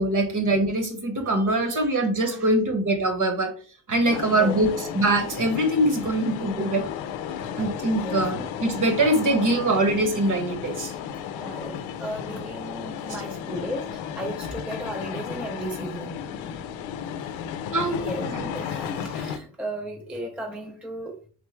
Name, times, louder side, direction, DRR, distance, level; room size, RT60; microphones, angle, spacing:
voice 1, 0.0-3.5 3.9-6.9 7.6-10.9 17.7-18.5, right 1 dB, 40° right, 5 dB, 1.3 m, -23 dB
voice 2, 1.2-1.8 2.3-2.5 4.1-4.5 7.4-7.5 7.9-8.2 11.3-16.6 17.2-17.5 17.8-21.3, equal, 5° right, 2 dB, 0.5 m, -36 dB
sound 1, 4.1-19.4, left 8 dB, 75° left, 0.6 m, -34 dB
3.8 x 3.3 x 3.1 m, 0.42 s
cardioid pair, 90°, 47 cm